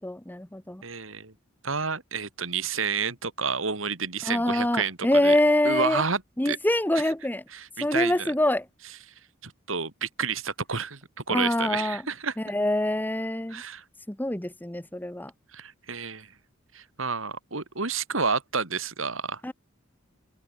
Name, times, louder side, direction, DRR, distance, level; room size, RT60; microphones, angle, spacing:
voice 1, 0.0-0.8 4.2-6.0 6.4-7.4 7.8-8.6 11.3-12.0 12.4-13.6 14.1-15.3 19.4-19.5, left 1 dB, 10° left, 1.0 m, -25 dB
voice 2, 0.8-1.3 1.6-5.4 5.7-6.6 7.5-8.3 9.4-12.4 13.5-13.8 15.5-16.3 16.7-19.4, right 5 dB, 80° right, 3.5 m, -30 dB
head